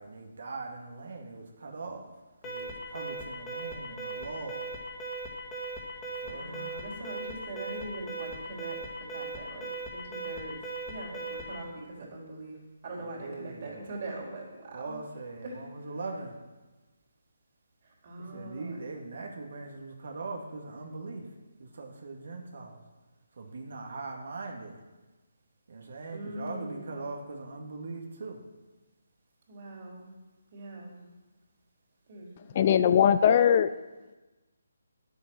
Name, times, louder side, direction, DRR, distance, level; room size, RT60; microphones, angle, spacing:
voice 1, 0.0-2.1 2.4-4.7 6.2-6.7 13.0-13.7 14.7-16.4 18.2-21.3 21.6-22.8 23.3-24.7 25.7-28.4, right 3 dB, 65° right, 1 dB, 2.0 m, -41 dB
Alarm, 2.4-11.6, right 2 dB, 15° left, 2.0 m, -39 dB
voice 2, 6.2-10.6 10.9-12.6 12.8-15.0 15.4-15.6 18.0-18.8 26.1-26.9 29.5-30.1 30.5-31.0 32.1-32.3, right 2 dB, 40° right, -2 dB, 3.8 m, -42 dB
voice 3, 32.5-33.7, left 8 dB, 35° left, 13 dB, 0.4 m, -20 dB
10.5 x 7.9 x 6.3 m, 1.2 s
hypercardioid pair, 160°, 0 cm